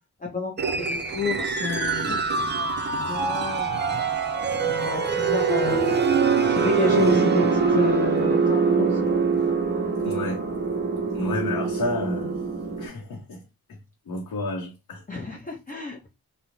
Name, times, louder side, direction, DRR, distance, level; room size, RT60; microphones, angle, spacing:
voice 1, 0.2-2.7 3.0-3.8 4.6-6.0 6.4-9.2 15.1-16.1, left 4 dB, 20° left, 0.6 m, -30 dB
sound 1, 0.6-12.9, right 5 dB, 30° right, 0.5 m, -24 dB
voice 2, 3.7-4.0 10.0-10.4 11.1-12.4 12.8-13.4 13.7-13.8 14.1-15.0, left 2 dB, 65° left, 0.7 m, -31 dB
2.4 x 2.0 x 2.9 m
cardioid pair, 65°, 37 cm